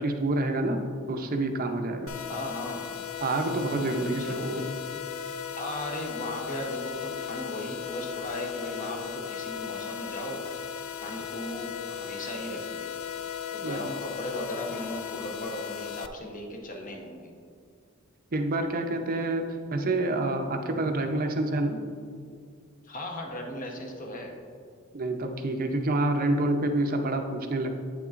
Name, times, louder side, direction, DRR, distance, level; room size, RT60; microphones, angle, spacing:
voice 1, 0.0-2.1 3.2-4.6 13.6-13.8 18.3-21.8 24.9-27.7, right 2 dB, 45° right, 5 dB, 0.6 m, -28 dB
sound 1, 2.1-16.1, left 8 dB, 85° left, 0.4 m, -37 dB
voice 2, 2.3-2.9 3.7-4.8 5.6-10.4 11.0-12.9 13.5-17.3 22.8-24.3, equal, 40° left, 1 dB, 0.9 m, -37 dB
8.9 x 6.8 x 2.5 m, 2.2 s
head